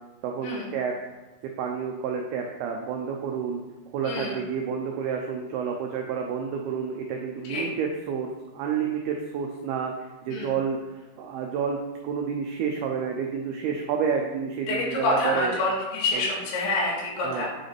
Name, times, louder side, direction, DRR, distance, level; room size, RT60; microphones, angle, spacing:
voice 1, 0.2-0.9 1.6-3.6 3.9-8.3 8.5-9.9 10.3-10.8 11.2-15.5 16.1-16.3 17.2-17.5, right 6 dB, 90° right, 1 dB, 2.2 m, -29 dB
voice 2, 4.0-4.4 7.5-7.6 10.3-10.5 14.7-17.5, left 2 dB, 85° left, -4 dB, 3.9 m, -27 dB
8.8 x 4.0 x 3.3 m, 1.1 s
omnidirectional pair, 5.2 m